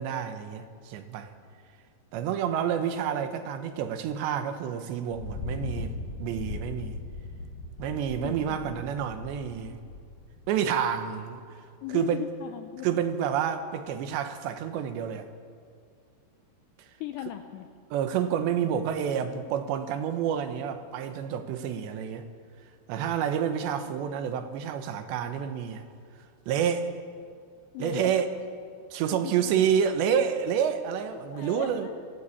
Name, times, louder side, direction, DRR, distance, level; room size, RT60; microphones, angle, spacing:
voice 1, 0.0-1.3 2.1-7.0 7.8-9.8 10.5-11.4 11.9-12.3 12.8-15.3 17.9-22.3 22.9-25.8 26.5-26.9 27.8-28.3 28.9-31.9, right 8 dB, 75° right, 8 dB, 3.2 m, -29 dB
Thunder, 5.1-10.6, left 3 dB, 55° left, 2.1 m, -38 dB
voice 2, 8.2-8.8 11.8-13.0 17.0-17.7 27.7-28.3 29.1-29.5 31.1-31.9, left 11 dB, 80° left, 7 dB, 2.5 m, -38 dB
24.5 x 15.0 x 8.4 m, 2.2 s
omnidirectional pair, 5.6 m